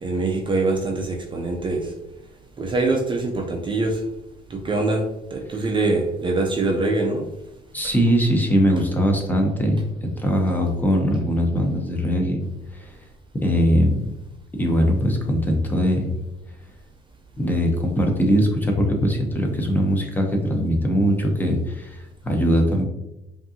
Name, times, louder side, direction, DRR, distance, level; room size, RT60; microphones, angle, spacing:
voice 1, 0.0-1.9 2.6-4.0 4.5-7.3, right 2 dB, 30° right, 1 dB, 0.5 m, -24 dB
voice 2, 7.7-12.4 12.7-12.9 13.4-14.1 14.5-16.1 17.4-22.8, equal, 10° left, 2 dB, 0.8 m, -21 dB
5.1 x 2.7 x 2.8 m, 0.91 s
cardioid pair, 110°, 17 cm